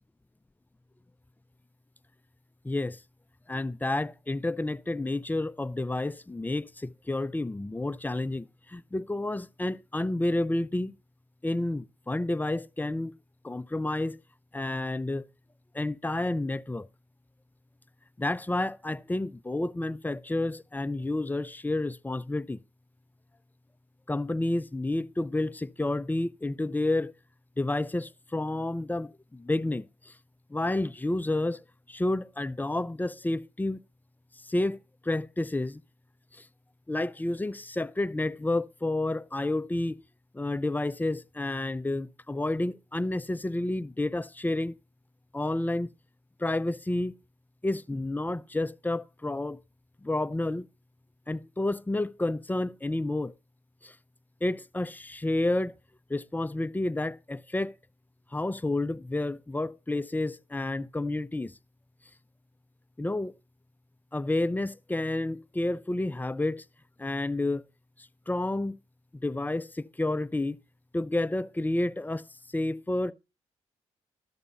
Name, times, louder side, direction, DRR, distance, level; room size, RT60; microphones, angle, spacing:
voice 1, 2.6-3.0 3.5-10.9 11.4-13.1 13.4-14.2 14.5-15.3 15.7-16.9 18.2-22.6 24.1-27.1 27.6-30.1 30.5-31.6 31.9-33.8 34.5-35.8 36.3-36.5 36.9-40.0 40.3-44.7 45.3-45.9 46.4-47.2 47.6-49.6 50.0-50.7 51.3-53.3 53.8-53.9 54.4-55.7 56.1-57.8 58.3-61.5 63.0-63.3 64.1-66.6 67.0-67.6 68.3-68.8 69.2-70.6 70.9-72.2 72.5-73.1, left 2 dB, 15° left, 0.6 m, -30 dB
12.5 x 6.8 x 4.1 m
supercardioid pair, 60°, 13 cm